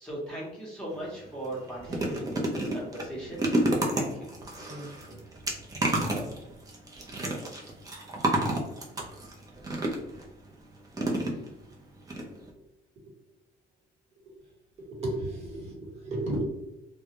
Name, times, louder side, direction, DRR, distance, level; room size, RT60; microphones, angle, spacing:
voice 1, 0.0-4.3, right 1 dB, 5° left, -7 dB, 0.9 m, -39 dB
sound 1, 0.9-1.1 1.4-10.2 10.9-11.7 12.1-12.2 12.5-12.6, right 1 dB, 20° right, 0.6 m, -30 dB
voice 2, 1.9-2.3 4.7-5.2 14.2-14.4 14.8-16.4, right 1 dB, 40° right, -3 dB, 1.1 m, -35 dB
2.3 x 2.1 x 2.9 m, 0.92 s
cardioid pair, 110°, 17 cm